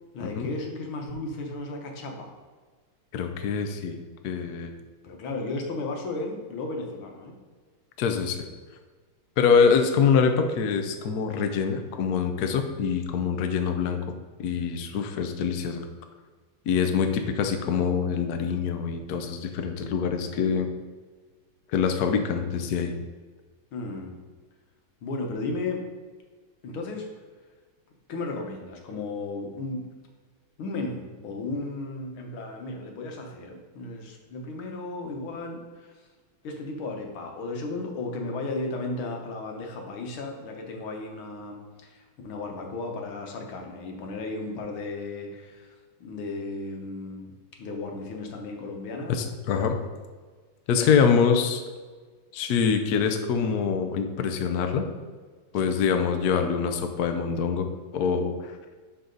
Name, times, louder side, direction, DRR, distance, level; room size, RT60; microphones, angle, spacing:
voice 1, 0.1-2.3 5.0-7.3 23.7-24.2 25.0-25.8 26.6-27.1 28.1-29.9 30.6-36.1 36.4-47.3 47.6-49.2 50.8-50.9 55.5-55.7, left 2 dB, 85° left, 2 dB, 2.0 m, -34 dB
voice 2, 3.1-4.0 4.2-4.7 8.0-8.4 9.4-15.8 16.7-20.7 21.7-22.9 49.1-49.8 50.7-51.6 52.3-54.9 55.5-58.6, left 6 dB, 65° left, 6 dB, 1.0 m, -25 dB
11.5 x 4.1 x 3.9 m, 1.4 s
omnidirectional pair, 2.2 m